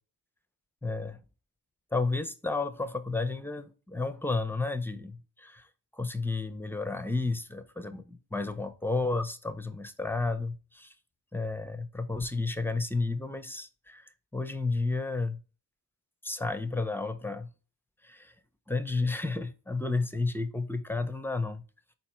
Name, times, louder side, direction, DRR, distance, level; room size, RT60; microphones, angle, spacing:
voice 1, 0.8-1.2 1.9-5.7 5.9-10.9 11.3-15.4 16.2-17.5 18.0-18.3 18.7-21.6, left 3 dB, 5° left, 0.5 m, -32 dB
4.2 x 2.1 x 4.2 m
cardioid pair, 40°, 48 cm